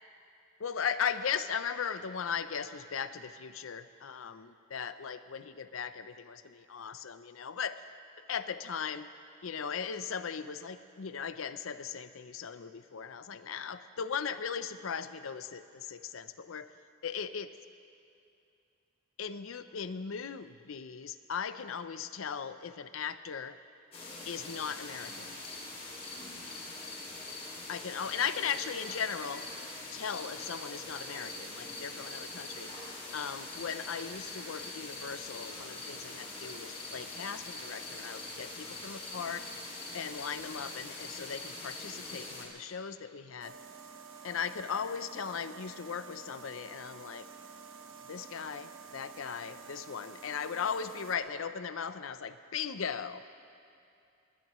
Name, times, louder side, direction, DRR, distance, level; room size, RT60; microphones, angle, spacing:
voice 1, 0.6-7.8 8.3-9.1 9.4-16.7 17.0-17.5 19.2-23.6 24.3-25.3 27.7-29.5 29.9-32.7 33.1-39.5 39.9-43.5 44.2-47.3 48.1-53.2, left 7 dB, 85° left, 12 dB, 0.6 m, -38 dB
sound 1, 23.9-42.5, left 2 dB, 30° left, 2.5 m, -43 dB
sound 2, 43.4-51.2, right 5 dB, 70° right, 1.1 m, -50 dB
22.0 x 18.5 x 3.1 m, 2.6 s
head